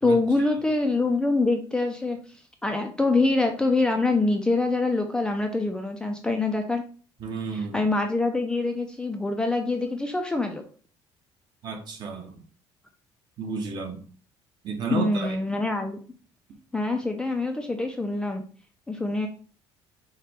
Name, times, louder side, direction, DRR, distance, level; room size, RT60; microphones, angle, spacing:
voice 1, 0.0-2.2 2.6-6.8 7.7-10.6 14.9-16.0 16.7-18.4 18.9-19.3, left 2 dB, 10° left, 0.4 m, -25 dB
voice 2, 7.2-7.8 11.6-12.4 13.4-14.0 14.6-15.4, right 5 dB, 45° right, 0.9 m, -32 dB
5.0 x 2.2 x 4.2 m
cardioid pair, 165°, 10 cm